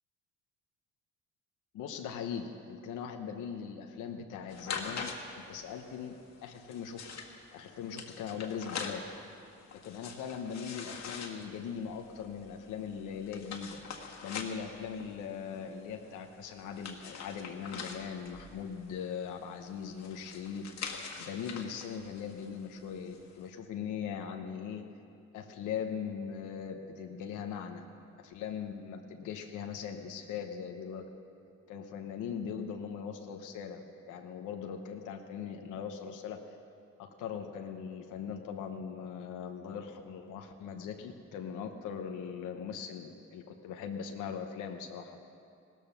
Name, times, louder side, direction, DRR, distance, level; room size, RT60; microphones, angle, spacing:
voice 1, 1.7-7.1 7.5-9.0 9.7-13.8 14.2-24.8 25.3-27.8 28.2-31.1 31.7-36.4 37.0-45.2, left 7 dB, 90° left, 4 dB, 1.0 m, -40 dB
sound 1, 4.5-23.4, left 5 dB, 60° left, 1.8 m, -45 dB
16.5 x 13.5 x 5.8 m, 2.5 s
cardioid pair, 90°, 30 cm